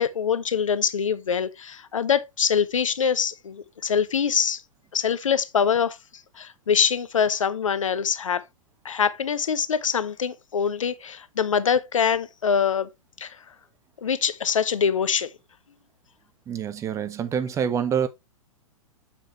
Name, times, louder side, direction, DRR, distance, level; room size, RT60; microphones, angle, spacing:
voice 1, 0.0-4.6 4.9-6.0 6.4-8.4 8.8-12.9 13.2-13.4 14.0-15.3, left 7 dB, 65° left, 0.8 m, -24 dB
voice 2, 16.5-18.1, right 8 dB, 15° right, 0.7 m, -26 dB
7.2 x 6.1 x 3.0 m
figure-of-eight pair, 105°, 18 cm